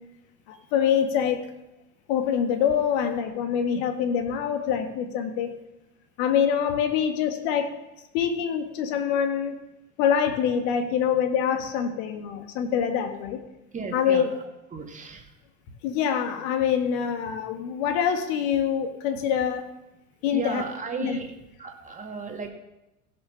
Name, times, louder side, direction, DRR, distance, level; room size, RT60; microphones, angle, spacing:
voice 1, 0.5-1.5 2.1-5.5 6.2-7.7 8.1-9.6 10.0-13.4 13.9-14.3 15.8-19.7 20.2-20.6 21.0-21.2, left 8 dB, 45° left, 6 dB, 1.7 m, -25 dB
voice 2, 13.7-14.2 14.7-15.2 20.3-21.3 21.6-22.5, right 4 dB, 15° right, 3 dB, 2.0 m, -34 dB
16.0 x 6.4 x 5.8 m, 0.94 s
figure-of-eight pair, 80°, 44 cm